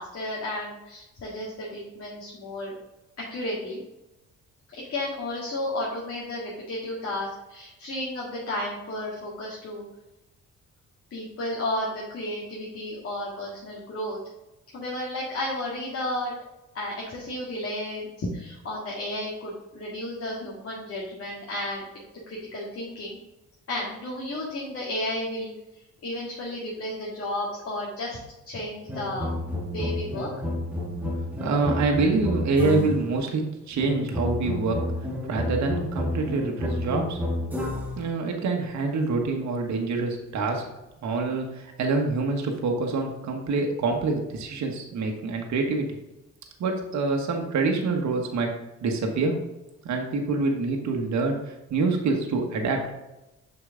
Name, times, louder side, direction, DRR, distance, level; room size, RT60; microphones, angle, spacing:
voice 1, 0.0-2.7 3.2-3.8 4.7-9.9 11.1-14.2 14.7-16.3 16.7-21.8 22.3-23.2 23.7-25.5 26.0-28.2 28.5-29.3 29.7-30.3, left 1 dB, 50° left, -5 dB, 2.0 m, -33 dB
sound 1, 28.9-33.1 33.8-38.1, left 1 dB, 5° right, 1.8 m, -30 dB
voice 2, 31.4-34.8 35.2-37.2 38.0-40.6 41.0-45.9 46.6-48.5 48.8-49.4 49.8-51.4 51.7-52.9, right 3 dB, 65° right, 2 dB, 1.4 m, -26 dB
6.6 x 5.0 x 3.8 m, 0.96 s
cardioid pair, 90°, 30 cm